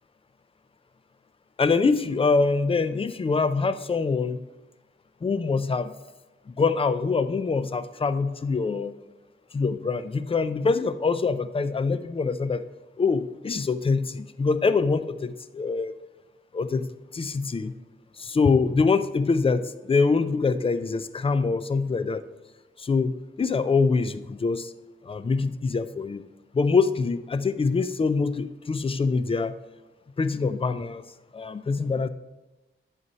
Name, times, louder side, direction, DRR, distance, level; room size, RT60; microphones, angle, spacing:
voice 1, 1.6-4.4 5.2-5.9 6.6-8.9 9.5-12.6 13.0-15.9 16.5-16.9 17.1-17.7 18.2-19.6 19.9-22.2 22.8-24.7 25.1-26.2 26.5-29.5 30.2-31.0 31.3-32.1, left 4 dB, 25° left, 12 dB, 0.3 m, -24 dB
11.0 x 4.2 x 5.3 m, 1.1 s
wide cardioid pair, 150°, 21 cm